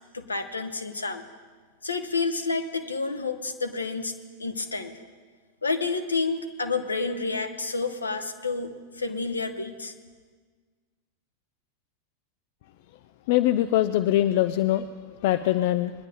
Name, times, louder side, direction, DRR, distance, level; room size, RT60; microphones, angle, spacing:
voice 1, 0.1-1.2 1.8-4.1 4.4-4.9 5.6-9.9, left 4 dB, 75° left, 7 dB, 1.0 m, -29 dB
voice 2, 13.3-14.9 15.2-15.9, left 13 dB, 50° left, 11 dB, 0.4 m, -22 dB
21.0 x 10.0 x 3.6 m, 1.5 s
figure-of-eight pair, 90°, 0 cm